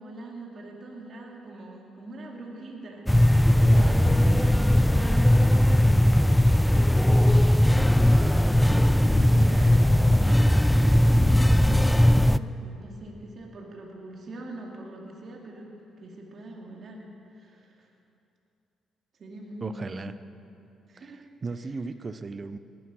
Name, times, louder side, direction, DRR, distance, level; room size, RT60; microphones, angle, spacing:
voice 1, 0.0-7.1 7.3-7.9 8.4-15.7 16.0-17.0 17.3-17.9 19.2-20.1 20.9-21.2 21.5-21.7, right 2 dB, 50° right, -1 dB, 2.5 m, -42 dB
sound 1, 3.1-12.4, left 1 dB, 5° left, 0.3 m, -19 dB
voice 2, 19.6-20.1 21.0-22.6, right 4 dB, 35° right, 12 dB, 0.6 m, -36 dB
19.0 x 11.0 x 6.2 m, 2.8 s
cardioid pair, 90°, 0 cm